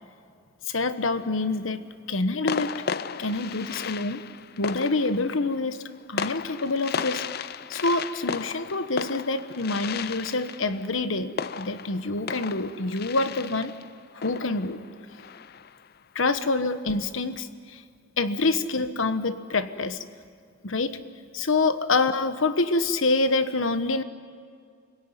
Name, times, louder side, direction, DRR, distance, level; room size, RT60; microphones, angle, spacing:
voice 1, 0.7-1.8 2.1-2.7 3.2-4.2 4.6-5.8 6.1-7.2 7.7-13.7 14.1-14.8 16.1-17.8 18.2-20.0 20.6-21.0 21.3-24.0, left 3 dB, 85° left, 12 dB, 1.2 m, -26 dB
sound 1, 1.2-1.6 2.5-15.9, left 6 dB, 50° left, 0.5 m, -35 dB
25.5 x 17.0 x 9.8 m, 2.2 s
head